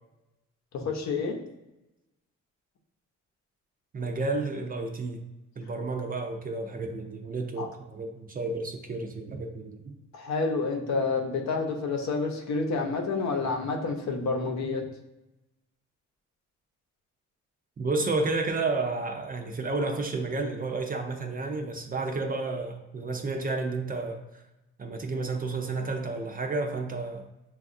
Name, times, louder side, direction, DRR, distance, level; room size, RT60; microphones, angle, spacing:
voice 1, 0.7-1.4 7.6-7.7 10.1-14.8, left 4 dB, 65° left, 2 dB, 0.7 m, -29 dB
voice 2, 3.9-5.2 5.6-9.9 17.8-24.2 24.8-27.3, right 3 dB, 30° right, 4 dB, 0.5 m, -31 dB
6.1 x 2.4 x 2.5 m, 0.97 s
cardioid pair, 90°, 30 cm